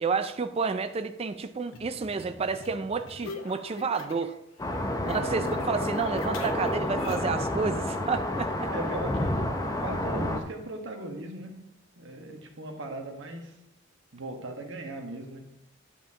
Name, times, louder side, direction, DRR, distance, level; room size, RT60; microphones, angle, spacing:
voice 1, 0.0-4.3 5.0-8.7, right 4 dB, 30° right, 9 dB, 0.4 m, -30 dB
sound 1, 1.7-4.4 4.6-7.4, left 3 dB, 80° left, 1.1 m, -43 dB
sound 2, 4.6-10.4, left 1 dB, 15° left, 0.6 m, -30 dB
voice 2, 5.1-5.5 8.7-11.6 12.0-13.5 14.1-15.4, right 1 dB, 65° right, 2 dB, 1.5 m, -38 dB
10.5 x 7.3 x 2.9 m, 0.83 s
head